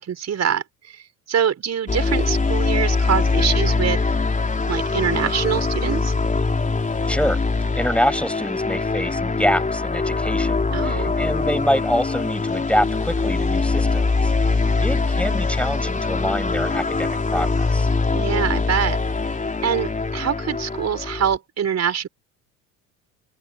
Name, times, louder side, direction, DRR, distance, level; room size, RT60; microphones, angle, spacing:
voice 1, 0.0-4.0 4.7-6.1 10.7-11.2 18.1-19.0 19.6-22.1, right 8 dB, 45° right, 5.5 m, -24 dB
sound 1, 1.9-21.4, left 3 dB, 20° left, 4.2 m, -22 dB
voice 2, 7.1-7.4 7.8-17.9, equal, 5° left, 5.3 m, -25 dB
supercardioid pair, 75°, 37 cm